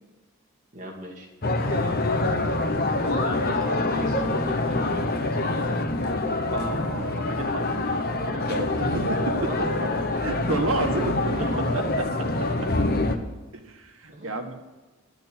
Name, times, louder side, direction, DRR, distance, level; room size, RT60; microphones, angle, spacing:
voice 1, 0.7-1.3 3.0-5.8 9.5-10.0 11.3-11.9 14.1-14.4, equal, 35° right, 0 dB, 2.3 m, -36 dB
sound 1, 1.4-13.2, left 2 dB, 45° left, 1.1 m, -25 dB
voice 2, 6.5-9.2 10.2-11.3 11.7-11.8 13.5-14.5, right 2 dB, 75° right, 3 dB, 1.7 m, -30 dB
12.5 x 6.8 x 9.7 m, 1.2 s
head